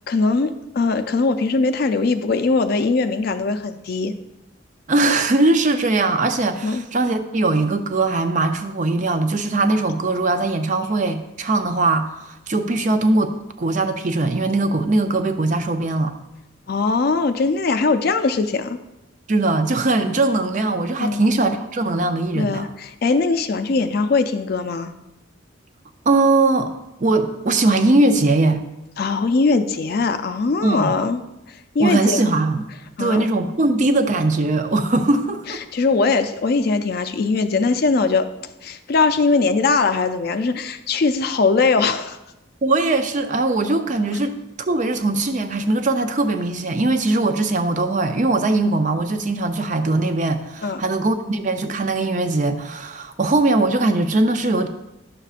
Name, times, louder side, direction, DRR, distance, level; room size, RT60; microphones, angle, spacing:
voice 1, 0.1-4.1 6.6-6.8 16.7-18.8 21.0-21.3 22.4-24.9 29.0-31.2 31.5-32.3 33.0-33.2 35.5-38.3 38.6-42.2 50.6-50.8, left 4 dB, 50° left, 9 dB, 0.4 m, -20 dB
voice 2, 4.9-16.1 19.3-22.7 26.1-26.7 27.0-28.6 30.6-31.0 31.8-32.7 33.0-35.6 42.6-44.3 44.7-54.7, right 2 dB, 40° right, 8 dB, 0.5 m, -20 dB
11.0 x 6.8 x 2.5 m, 0.94 s
head